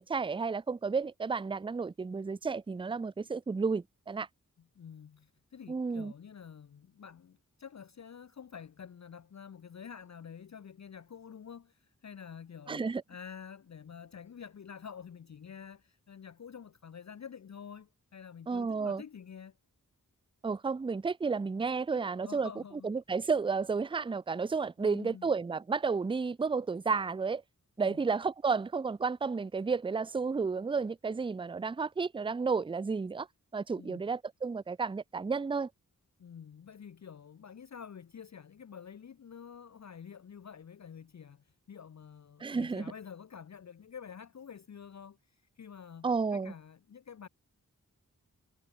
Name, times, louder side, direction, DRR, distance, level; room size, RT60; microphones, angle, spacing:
voice 1, 0.0-4.3 5.7-6.1 12.7-13.0 18.5-19.0 20.4-22.5 22.8-27.4 27.8-33.3 33.5-35.7 42.4-42.8 46.0-46.5, right 4 dB, 15° right, 0.3 m, -32 dB
voice 2, 4.7-19.6 21.9-22.9 24.8-25.3 27.8-28.0 33.7-34.0 36.2-45.2 45.6-47.3, left 7 dB, 50° left, 0.6 m, -48 dB
wide cardioid pair, 70°, 35 cm